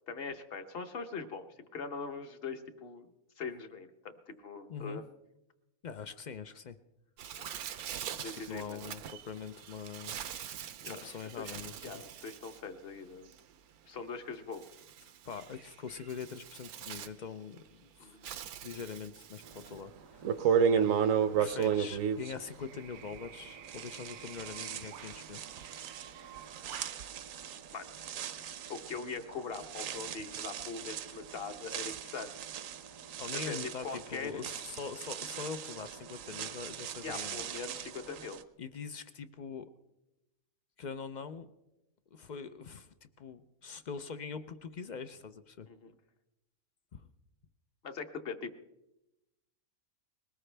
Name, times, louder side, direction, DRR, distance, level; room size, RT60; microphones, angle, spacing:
voice 1, 0.1-5.0 7.4-7.5 8.2-8.8 10.8-11.1 11.4-13.3 13.9-14.7 18.0-18.3 20.7-20.9 27.7-32.3 33.5-34.4 37.0-38.4 45.7-45.9 47.8-48.5, left 5 dB, 45° left, 8 dB, 1.1 m, -42 dB
voice 2, 4.7-5.0 5.8-6.8 8.1-10.2 10.9-12.0 15.3-18.2 18.6-20.6 21.4-25.4 33.2-37.4 38.6-39.7 40.8-41.5 42.1-45.7 46.9-47.1, left 6 dB, 65° left, 11 dB, 0.4 m, -43 dB
Bird, 7.2-27.1, right 9 dB, 85° right, 1.2 m, -47 dB
sound 1, 19.7-19.8 20.2-23.4 23.7-38.4, right 7 dB, 65° right, 1.0 m, -35 dB
21.0 x 18.5 x 3.3 m, 0.94 s
omnidirectional pair, 1.5 m